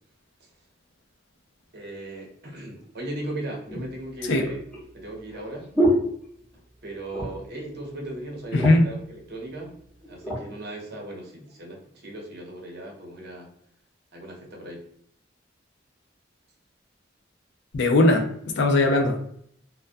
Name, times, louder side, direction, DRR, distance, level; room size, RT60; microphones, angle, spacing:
voice 1, 1.7-4.6 4.9-5.7 6.8-13.5 14.1-14.8, right 1 dB, 60° right, 0.7 m, -37 dB
sound 1, 2.7-2.8 3.7-6.8 7.1-7.6 7.9-8.0 8.3-9.0 9.7-10.5 11.1-11.3, equal, 5° left, 0.8 m, -28 dB
voice 2, 8.5-8.8 17.7-19.3, left 2 dB, 65° left, 0.4 m, -20 dB
2.3 x 2.1 x 2.5 m
head